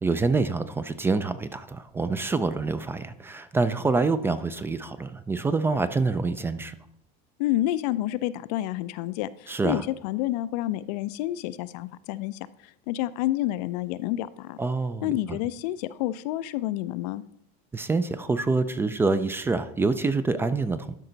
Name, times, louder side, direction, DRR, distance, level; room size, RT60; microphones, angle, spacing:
voice 1, 0.0-6.8 9.5-9.8 14.6-15.4 17.7-20.9, right 3 dB, 10° right, 13 dB, 0.3 m, -26 dB
voice 2, 7.4-14.6 15.0-17.2, left 14 dB, 80° left, 15 dB, 0.5 m, -29 dB
12.0 x 5.4 x 3.9 m, 0.75 s
supercardioid pair, 145°, 21 cm